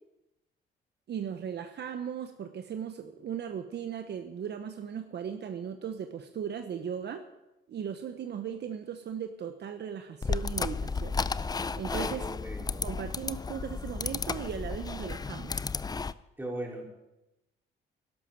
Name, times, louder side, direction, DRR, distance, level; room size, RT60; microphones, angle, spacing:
voice 1, 1.1-7.2 7.7-11.2 11.8-12.3 12.8-15.6, right 8 dB, 60° right, 7 dB, 1.0 m, -37 dB
sound 1, 10.2-16.1, left 4 dB, 20° left, 0.5 m, -33 dB
voice 2, 11.9-12.9 16.4-16.8, right 1 dB, 10° right, -1 dB, 4.5 m, -38 dB
12.0 x 11.5 x 7.6 m, 0.95 s
cardioid pair, 90°, 20 cm